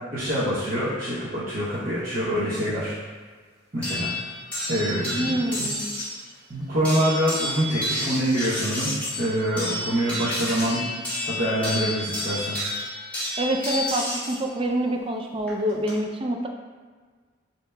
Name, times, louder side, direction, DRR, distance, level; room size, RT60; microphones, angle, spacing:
voice 1, 0.1-2.9 3.7-4.1 4.7-5.3 6.5-8.9 9.2-10.8 11.2-12.6, equal, 45° right, -12 dB, 0.8 m, -25 dB
sound 1, 3.8-6.2 6.8-14.4 15.5-15.9, left 1 dB, 5° left, 1.5 m, -30 dB
voice 2, 5.2-5.9 13.4-16.5, right 1 dB, 30° right, 3 dB, 0.3 m, -26 dB
6.7 x 2.8 x 2.2 m, 1.5 s
head